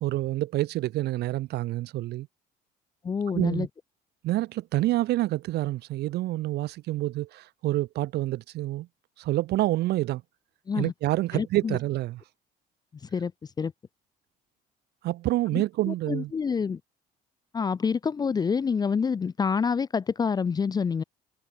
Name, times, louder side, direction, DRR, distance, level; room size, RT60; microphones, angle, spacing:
voice 1, 0.0-2.3 3.3-3.7 4.2-8.9 9.2-10.2 10.7-12.2 15.0-16.3, right 16 dB, 75° right, 1.4 m, -27 dB
voice 2, 3.0-3.7 10.7-10.9 11.3-11.8 13.1-13.3 13.6-13.7 15.9-16.8 17.5-21.0, left 6 dB, 25° left, 0.4 m, -27 dB
cardioid pair, 110°, 17 cm